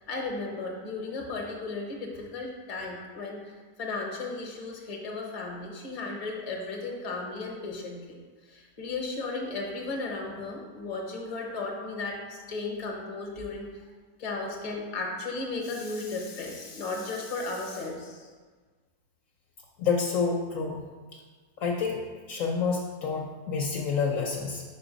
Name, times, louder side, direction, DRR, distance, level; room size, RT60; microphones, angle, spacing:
voice 1, 0.0-3.4 3.8-8.0 8.5-13.7 14.2-18.3, left 3 dB, 30° left, 0 dB, 0.8 m, -35 dB
voice 2, 19.8-20.9 21.6-22.0 22.3-24.6, left 5 dB, 65° left, 0 dB, 0.9 m, -28 dB
4.8 x 4.5 x 5.0 m, 1.5 s
omnidirectional pair, 1.6 m